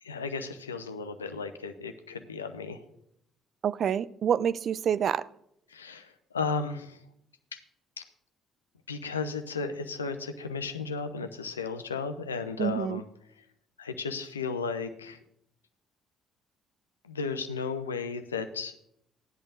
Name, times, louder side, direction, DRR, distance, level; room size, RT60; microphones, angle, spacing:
voice 1, 0.0-2.8 5.7-7.0 7.5-7.6 8.0-8.1 8.9-13.0 13.4-13.5 13.8-15.2 17.0-18.7, left 5 dB, 80° left, 8 dB, 0.7 m, -34 dB
voice 2, 3.6-5.2 12.6-13.0, right 8 dB, 50° right, 18 dB, 0.4 m, -27 dB
16.0 x 10.5 x 2.6 m, 0.75 s
figure-of-eight pair, 45°, 0 cm